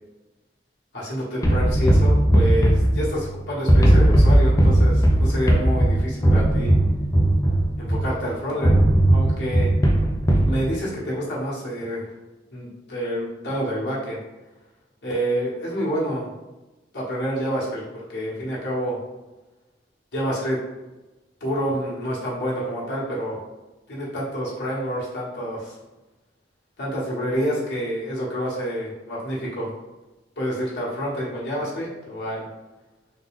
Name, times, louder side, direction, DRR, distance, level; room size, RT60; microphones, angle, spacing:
voice 1, 0.9-6.7 7.8-8.8 9.1-9.7 10.3-12.1 12.5-14.2 15.0-16.3 16.9-19.0 20.1-20.6 21.4-23.4 23.9-25.8 26.8-29.8 30.4-32.5, equal, 75° left, -7 dB, 1.3 m, -28 dB
sound 1, 1.4-3.4 3.7-8.1 8.6-10.6, right 1 dB, 20° left, 0.4 m, -17 dB
3.8 x 2.3 x 3.2 m, 1.1 s
head